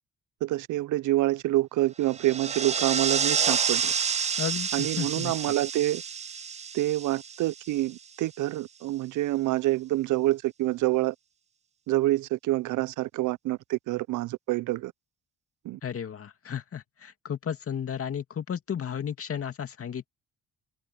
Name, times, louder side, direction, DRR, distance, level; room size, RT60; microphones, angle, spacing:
voice 1, 0.4-3.9 4.7-6.0 6.7-11.1 11.9-14.9 15.6-15.8, right 16 dB, 80° right, 0.6 m, -27 dB
sound 1, 2.1-7.9, right 6 dB, 25° right, 0.4 m, -29 dB
voice 2, 4.4-5.3 15.8-20.1, left 8 dB, 50° left, 2.3 m, -33 dB
cardioid pair, 90°, 30 cm